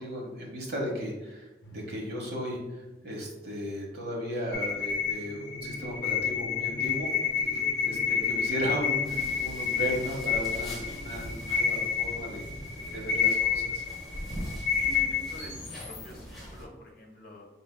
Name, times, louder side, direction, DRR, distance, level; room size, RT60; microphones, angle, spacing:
voice 1, 0.0-7.1 7.5-12.4 12.9-13.8, equal, 65° right, -2 dB, 1.1 m, -36 dB
sound 1, 1.6-13.2, left 1 dB, 85° left, 0.6 m, -46 dB
sound 2, 4.5-16.0, left 7 dB, 35° left, 1.2 m, -30 dB
sound 3, 9.0-16.7, equal, ahead, 1.0 m, -42 dB
voice 2, 14.7-15.5 15.8-17.5, equal, 55° left, 0 dB, 0.9 m, -47 dB
4.9 x 3.7 x 2.2 m, 1.1 s
head